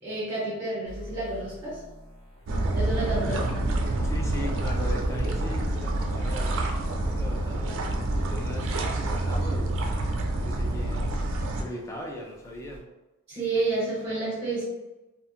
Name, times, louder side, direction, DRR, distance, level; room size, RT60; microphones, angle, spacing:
voice 1, 0.0-1.8 2.7-3.4 13.3-14.6, right 2 dB, 20° right, -8 dB, 1.0 m, -30 dB
sound 1, 0.9-12.8, equal, 50° left, 0.9 m, -45 dB
sound 2, 2.5-11.6, right 2 dB, 60° right, 0.4 m, -27 dB
voice 2, 3.3-3.7 4.0-6.5 7.0-9.7 10.4-11.1 11.6-12.8, left 1 dB, 15° left, 0 dB, 0.3 m, -38 dB
2.6 x 2.3 x 2.7 m, 1.1 s
head